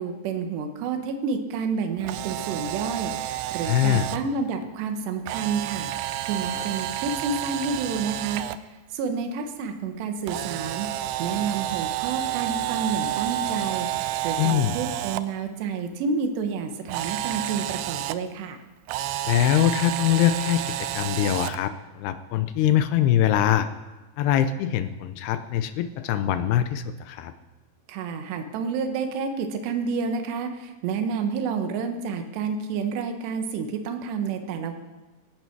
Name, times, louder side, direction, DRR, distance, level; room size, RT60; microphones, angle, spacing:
voice 1, 0.0-8.5 8.9-10.9 11.2-18.6 27.9-34.7, right 5 dB, 70° right, 6 dB, 3.3 m, -29 dB
Camera, 2.0-4.2 5.3-8.6 10.3-15.2 16.9-18.2 18.9-21.6, right 13 dB, 85° right, 2.2 m, -30 dB
voice 2, 3.7-4.1 6.5-6.6 14.4-14.7 19.3-23.7 24.2-27.3, left 11 dB, 80° left, 11 dB, 2.4 m, -23 dB
17.5 x 17.0 x 4.7 m, 1.1 s
omnidirectional pair, 5.3 m